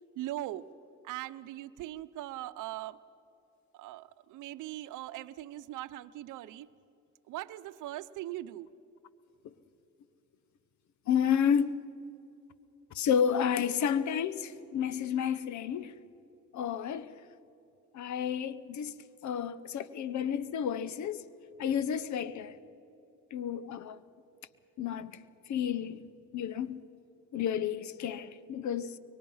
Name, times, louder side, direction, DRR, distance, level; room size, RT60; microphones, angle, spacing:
voice 1, 0.2-0.7 1.0-3.0 3.7-6.7 7.3-8.7, right 15 dB, 90° right, 0.7 m, -40 dB
voice 2, 11.1-11.7 12.9-16.0 16.5-17.2 17.9-21.2 21.6-22.6 23.3-24.0 24.8-26.0 26.3-26.8 27.3-29.0, left 8 dB, 70° left, 1.0 m, -31 dB
24.5 x 23.0 x 5.6 m
cardioid pair, 90°, 30 cm